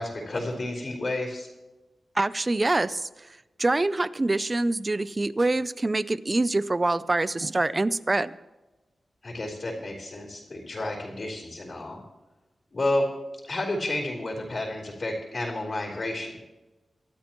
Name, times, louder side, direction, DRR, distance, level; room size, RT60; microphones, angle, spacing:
voice 1, 0.0-1.5 9.2-12.0 12.7-13.1 13.4-16.3, left 1 dB, 40° left, -4 dB, 4.0 m, -31 dB
voice 2, 2.2-3.1 3.6-8.3, right 2 dB, 25° right, 16 dB, 0.5 m, -25 dB
25.0 x 13.0 x 3.1 m, 1.1 s
wide cardioid pair, 130°, 0 cm